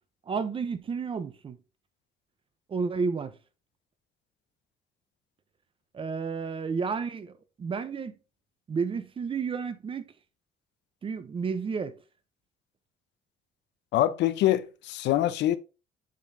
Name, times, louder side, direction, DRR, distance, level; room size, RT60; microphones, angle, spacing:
voice 1, 0.3-1.6 2.7-3.4 5.9-8.1 8.7-10.1 11.0-12.0, right 5 dB, 30° right, 0.6 m, -31 dB
voice 2, 13.9-15.6, left 13 dB, 80° left, 0.7 m, -24 dB
7.5 x 5.6 x 2.6 m
cardioid pair, 130°, 18 cm